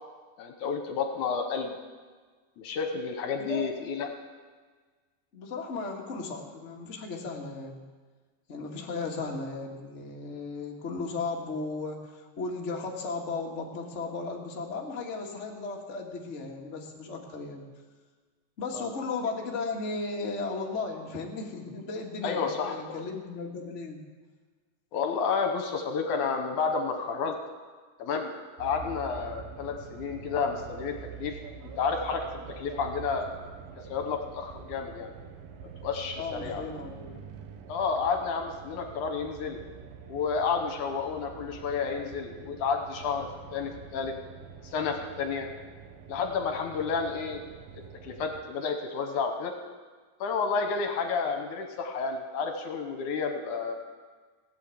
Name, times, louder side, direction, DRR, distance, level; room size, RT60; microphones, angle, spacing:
voice 1, 0.4-1.7 2.6-4.1 8.8-9.0 18.7-18.9 22.2-23.0 24.9-27.4 28.0-28.3 28.6-31.4 31.8-32.2 32.5-33.3 33.9-35.1 35.8-36.6 37.7-39.6 40.1-44.1 44.6-45.5 46.1-47.4 48.0-49.5 50.2-53.7, left 5 dB, 70° left, 5 dB, 2.4 m, -31 dB
voice 2, 5.3-7.8 8.5-17.6 18.6-24.0 36.2-37.2, left 3 dB, 30° left, -1 dB, 1.5 m, -35 dB
sound 1, 28.6-48.4, right 7 dB, 90° right, 2.8 m, -46 dB
17.0 x 8.5 x 8.3 m, 1.4 s
omnidirectional pair, 3.9 m